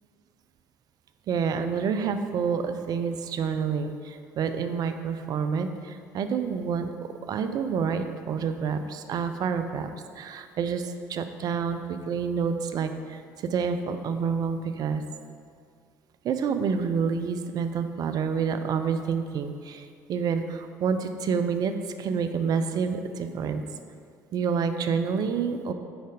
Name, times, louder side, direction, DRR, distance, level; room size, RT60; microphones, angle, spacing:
voice 1, 1.3-6.9 7.3-9.9 10.2-15.0 16.2-19.8 20.1-21.7 22.0-23.6 24.3-25.7, right 6 dB, 45° right, 8 dB, 0.4 m, -28 dB
5.1 x 4.0 x 5.0 m, 2.2 s
figure-of-eight pair, 50°, 9 cm